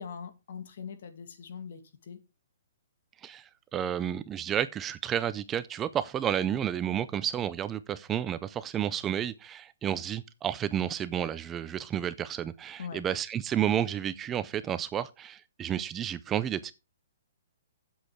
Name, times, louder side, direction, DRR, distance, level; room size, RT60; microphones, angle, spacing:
voice 1, 0.0-2.2 12.8-13.0, left 6 dB, 60° left, 2.1 m, -42 dB
voice 2, 3.2-16.7, right 10 dB, 15° right, 0.4 m, -31 dB
8.5 x 7.8 x 4.6 m
hypercardioid pair, 165°, 0 cm